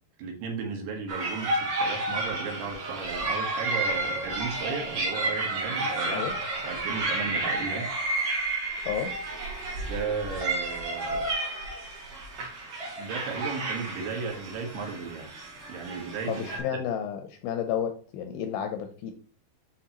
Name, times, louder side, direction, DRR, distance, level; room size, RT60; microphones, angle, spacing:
voice 1, 0.2-7.9 9.8-11.3 13.0-15.3 15.7-16.6, right 5 dB, 75° right, 2 dB, 3.3 m, -35 dB
sound 1, 1.1-16.6, right 2 dB, 50° right, 2.7 m, -31 dB
voice 2, 16.3-19.1, left 9 dB, 80° left, 6 dB, 2.2 m, -31 dB
8.3 x 4.3 x 2.9 m, 0.41 s
omnidirectional pair, 4.8 m